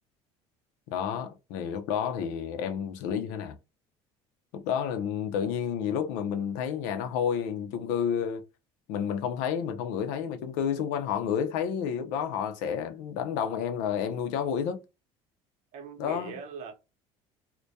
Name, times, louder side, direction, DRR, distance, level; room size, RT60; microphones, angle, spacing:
voice 1, 0.9-3.6 4.5-8.4 8.9-14.8 16.0-16.4, left 8 dB, 80° left, 0.5 m, -30 dB
voice 2, 15.7-16.7, right 6 dB, 60° right, 0.8 m, -40 dB
2.2 x 2.1 x 2.6 m
supercardioid pair, 105°, 13 cm